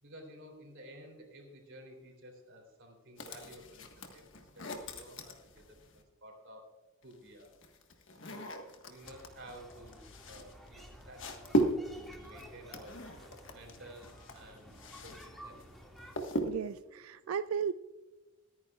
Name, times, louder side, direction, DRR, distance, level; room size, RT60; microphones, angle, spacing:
voice 1, 0.0-6.7 7.0-7.5 8.1-11.6 11.9-13.0 13.5-15.6, right 1 dB, 60° right, 3 dB, 3.3 m, -53 dB
sound 1, 3.2-6.0 7.0-15.3 15.6-16.8, right 1 dB, 60° left, 1.5 m, -38 dB
sound 2, 9.0-16.2, equal, ahead, 2.1 m, -53 dB
voice 2, 16.4-17.7, right 7 dB, 80° right, 13 dB, 0.3 m, -35 dB
24.5 x 9.6 x 2.4 m, 1.1 s
head